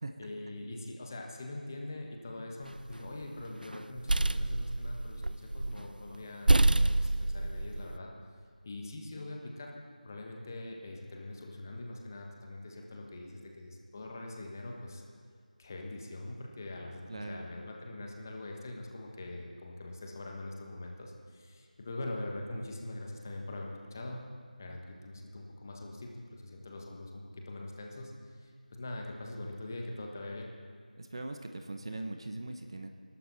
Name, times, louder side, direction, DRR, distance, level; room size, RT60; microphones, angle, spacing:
voice 1, 0.2-8.1 8.6-9.7 10.0-15.0 15.6-24.3 24.6-30.5, left 2 dB, 20° left, 1 dB, 1.4 m, -43 dB
sound 1, 2.7-3.2 3.7-5.8 6.1-6.2 6.5-8.0, right 2 dB, 85° right, 0.5 m, -27 dB
voice 2, 17.1-17.5 31.0-32.9, right 2 dB, 35° right, 6 dB, 1.0 m, -40 dB
27.5 x 12.0 x 4.1 m, 2.3 s
figure-of-eight pair, 170°, 5 cm